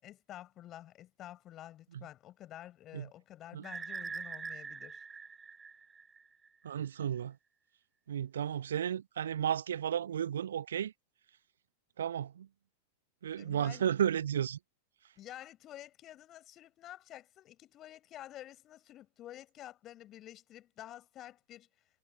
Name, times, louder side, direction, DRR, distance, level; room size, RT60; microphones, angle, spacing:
voice 1, 0.0-5.0 13.4-13.9 15.2-21.7, left 13 dB, 30° left, 5.8 m, -50 dB
sound 1, 3.6-6.5, right 5 dB, 15° right, 1.2 m, -43 dB
voice 2, 6.6-7.4 8.1-10.9 12.0-12.5 13.2-14.6, right 9 dB, 65° right, 1.0 m, -33 dB
figure-of-eight pair, 90°, 0 cm